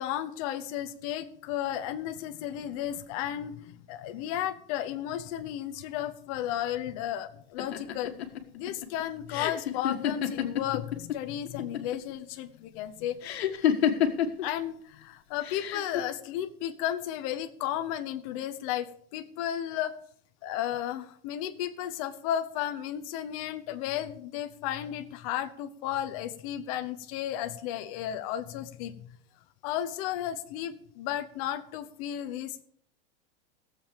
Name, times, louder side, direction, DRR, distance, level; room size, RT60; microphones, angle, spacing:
voice 1, 0.0-8.1 8.5-13.2 14.4-20.0 20.4-29.2 29.6-32.6, left 11 dB, 35° left, 11 dB, 0.9 m, -34 dB
sound 1, 7.6-11.2 11.4-12.1 13.2-14.4 15.4-16.0, left 9 dB, 80° left, 1.7 m, -28 dB
16.5 x 7.5 x 5.1 m, 0.64 s
supercardioid pair, 170°, 31 cm